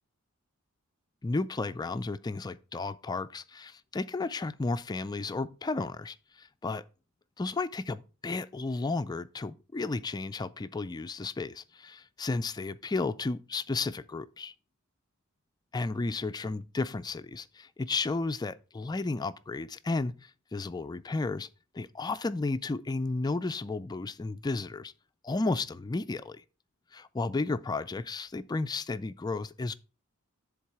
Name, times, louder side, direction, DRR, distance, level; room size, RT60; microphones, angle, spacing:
voice 1, 1.2-6.8 7.4-14.5 15.7-21.5 21.7-24.9 25.2-26.4 26.9-29.7, left 3 dB, 20° left, 0.3 m, -33 dB
10.5 x 4.0 x 4.7 m
head